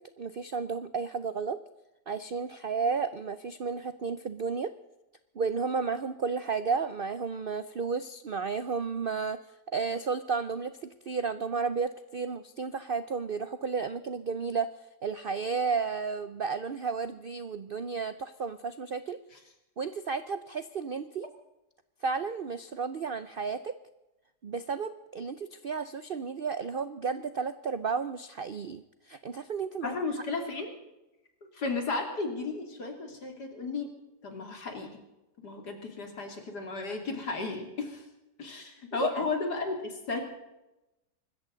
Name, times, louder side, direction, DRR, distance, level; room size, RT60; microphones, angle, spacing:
voice 1, 0.2-1.6 2.1-4.7 5.4-9.4 9.7-14.7 15.0-19.2 19.8-21.3 22.0-23.7 24.4-29.9 38.9-39.2, right 5 dB, 65° right, 12 dB, 0.5 m, -32 dB
voice 2, 29.8-30.7 31.5-33.9 34.2-34.9 35.4-38.0 38.4-40.2, left 3 dB, 70° left, 3 dB, 3.5 m, -34 dB
25.0 x 14.0 x 4.0 m, 0.96 s
omnidirectional pair, 1.8 m